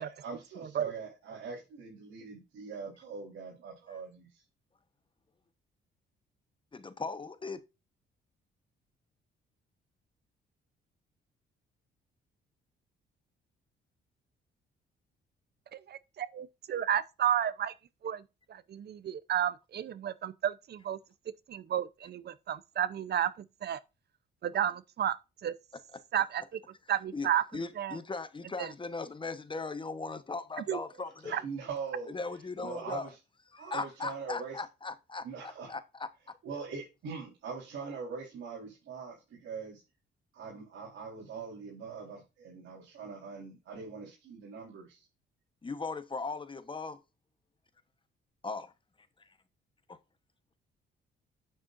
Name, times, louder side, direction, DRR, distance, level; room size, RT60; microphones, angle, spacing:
voice 1, 0.0-4.4 31.2-32.1 32.6-33.1 33.6-34.6 35.2-35.7 36.4-39.8 40.3-45.1, right 5 dB, 75° right, 4.0 m, -42 dB
voice 2, 0.6-0.9 15.7-17.7 18.0-18.2 18.5-21.0 21.5-23.8 24.4-25.2 25.4-25.5 26.1-26.6 26.9-27.4 27.8-28.0 28.6-28.7 30.7-30.8 31.3-31.4, right 10 dB, 55° right, 0.7 m, -32 dB
voice 3, 6.7-7.6 25.9-26.0 27.1-31.3 32.1-33.1 33.5-36.4 45.6-47.0 48.4-48.7 49.2-49.3 49.9-50.0, left 3 dB, 25° left, 1.1 m, -38 dB
9.1 x 7.3 x 2.6 m
cardioid pair, 90°, 20 cm